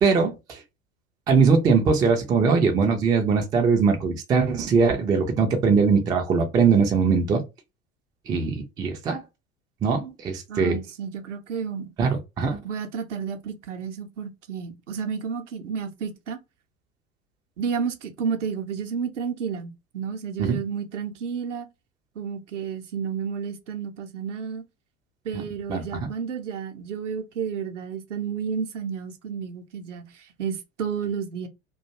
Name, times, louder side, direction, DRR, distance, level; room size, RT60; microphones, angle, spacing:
voice 1, 0.0-0.6 1.3-7.4 8.3-9.2 9.8-10.8 12.0-12.6 20.4-20.6 25.3-25.4 25.7-26.1, right 5 dB, 10° right, 0.3 m, -21 dB
voice 2, 10.5-11.9 12.6-16.4 17.6-21.7 22.2-24.6 25.2-31.5, right 6 dB, 70° right, 0.7 m, -31 dB
2.4 x 2.2 x 2.7 m
figure-of-eight pair, 80°, 38 cm